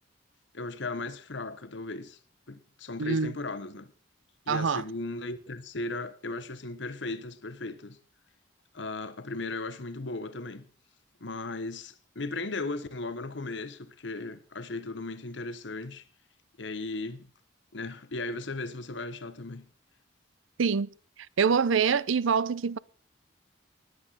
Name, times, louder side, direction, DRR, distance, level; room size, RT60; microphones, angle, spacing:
voice 1, 0.5-2.2 2.5-3.9 4.5-8.0 8.7-10.7 11.2-16.0 16.6-17.3 17.7-19.7, left 2 dB, 70° left, 1.0 m, -36 dB
voice 2, 3.0-3.3 4.5-4.8 20.6-20.9 21.4-22.8, right 6 dB, 85° right, 0.5 m, -25 dB
20.5 x 7.9 x 4.0 m
head